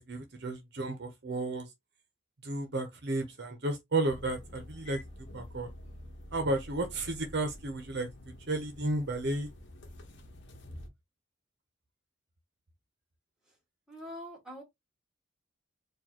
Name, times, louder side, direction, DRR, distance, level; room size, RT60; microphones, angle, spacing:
voice 1, 0.0-1.7 2.4-5.0 5.3-5.7 6.3-8.1 8.5-9.5, right 2 dB, 60° right, 0.9 m, -33 dB
sound 1, 4.1-10.9, left 1 dB, 65° left, 1.0 m, -48 dB
voice 2, 13.9-14.6, equal, 5° right, 1.7 m, -43 dB
4.5 x 2.6 x 3.0 m
head